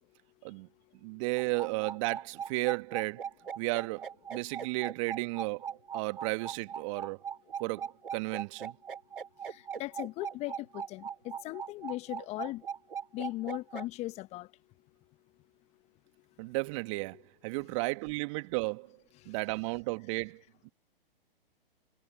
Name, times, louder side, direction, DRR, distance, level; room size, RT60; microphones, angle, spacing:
voice 1, 1.0-3.3 3.5-7.2 7.6-8.8 16.4-20.7, right 27 dB, 35° right, 1.7 m, -34 dB
sound 1, 1.4-13.8, right 7 dB, 70° right, 7.3 m, -39 dB
voice 2, 9.5-12.6 13.1-14.5, left 18 dB, 20° left, 1.1 m, -38 dB
figure-of-eight pair, 125°, 29 cm